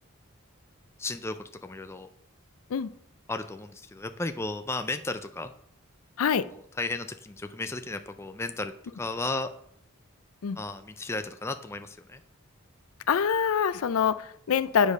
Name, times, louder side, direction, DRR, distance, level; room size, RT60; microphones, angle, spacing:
voice 1, 1.0-2.1 3.3-5.5 6.5-9.5 10.6-12.2, left 2 dB, 10° left, 8 dB, 0.4 m, -34 dB
voice 2, 13.1-14.9, left 7 dB, 80° left, 15 dB, 0.4 m, -25 dB
8.3 x 5.2 x 5.3 m, 0.69 s
head